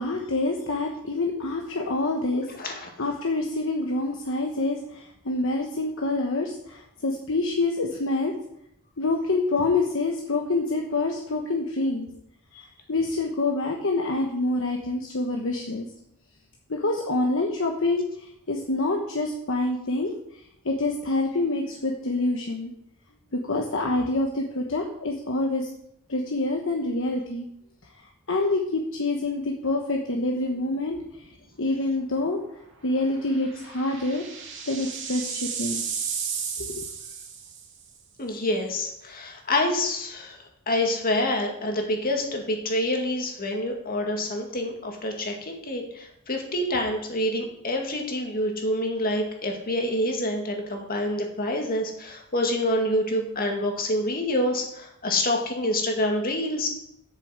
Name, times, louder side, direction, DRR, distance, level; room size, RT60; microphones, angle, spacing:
voice 1, 0.0-2.5 3.0-8.3 9.0-12.1 12.9-15.9 16.7-18.0 18.5-20.1 20.6-22.7 23.3-25.7 26.1-27.5 28.3-31.0 31.6-32.4 32.8-34.2 34.7-35.8 36.6-36.9, left 2 dB, 60° left, 1 dB, 1.1 m, -26 dB
voice 2, 2.5-2.9 12.5-12.6 38.2-40.4 40.7-56.8, left 1 dB, 40° left, 2 dB, 2.1 m, -27 dB
sound 1, 30.9-31.3 31.6-31.7 33.2-37.8, right 7 dB, 55° right, 2.1 m, -34 dB
8.4 x 6.8 x 7.5 m, 0.75 s
head